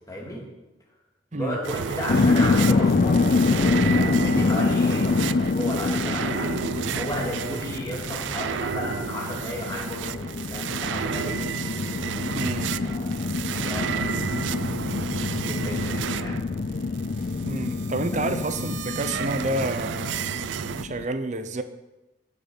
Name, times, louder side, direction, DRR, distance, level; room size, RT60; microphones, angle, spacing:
voice 1, 0.1-0.5 1.3-3.3 3.9-11.4 12.8-14.1 15.4-16.5 18.1-18.3, equal, 20° left, 2.4 m, -34 dB
sound 1, 1.6-20.8, right 8 dB, 85° right, 0.4 m, -32 dB
sound 2, 2.1-21.0, left 3 dB, 50° left, 0.4 m, -26 dB
voice 2, 12.3-12.7 17.4-20.2 20.8-21.6, right 2 dB, 40° right, 0.6 m, -29 dB
8.2 x 6.8 x 6.9 m
head